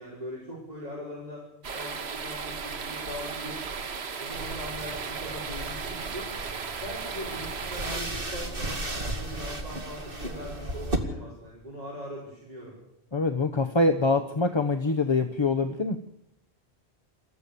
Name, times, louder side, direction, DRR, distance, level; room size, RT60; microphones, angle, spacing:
voice 1, 0.0-1.4 1.7-3.6 4.2-6.3 6.8-12.8, equal, 40° right, -6 dB, 5.8 m, -40 dB
sound 1, 1.6-8.0, right 5 dB, 75° right, 1.4 m, -36 dB
sound 2, 4.3-11.0, right 1 dB, 60° right, 2.4 m, -35 dB
voice 2, 13.1-16.0, left 3 dB, 30° left, 7 dB, 0.9 m, -24 dB
28.0 x 14.0 x 7.0 m, 0.84 s
omnidirectional pair, 1.1 m